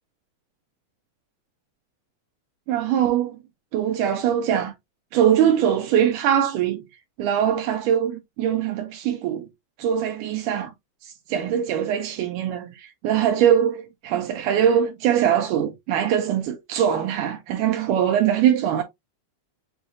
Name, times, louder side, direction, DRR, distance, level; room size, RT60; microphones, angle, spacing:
voice 1, 2.7-3.4 3.7-4.7 5.1-6.8 7.2-9.5 9.8-10.7 11.0-18.8, right 9 dB, 80° right, 2.1 m, -22 dB
7.0 x 2.4 x 2.5 m
omnidirectional pair, 3.8 m